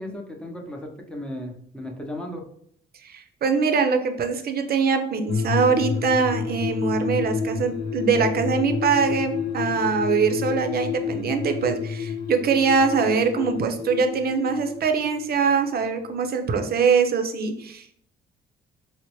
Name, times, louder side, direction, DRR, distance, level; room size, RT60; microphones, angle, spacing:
voice 1, 0.0-2.4, left 1 dB, 5° left, 1 dB, 0.8 m, -35 dB
voice 2, 3.0-17.9, right 5 dB, 50° right, 6 dB, 0.6 m, -23 dB
sound 1, 5.3-16.1 16.3-16.4, left 6 dB, 55° left, 0.5 m, -30 dB
4.3 x 2.1 x 3.0 m, 0.66 s
cardioid pair, 90°, 20 cm